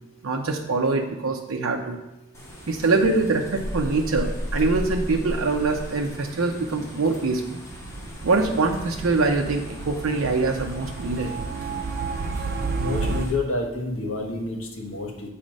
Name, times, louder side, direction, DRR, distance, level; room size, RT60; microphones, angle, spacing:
voice 1, 0.2-2.0 2.7-7.6 8.2-11.3, right 3 dB, 85° right, 1 dB, 0.6 m, -24 dB
sound 1, 2.3-13.3, equal, 15° left, 1.2 m, -36 dB
sound 2, 7.7-13.3, right 4 dB, 45° right, 0.3 m, -31 dB
voice 2, 12.8-15.3, left 2 dB, 80° left, 0 dB, 1.3 m, -29 dB
7.5 x 4.2 x 5.2 m, 0.96 s
head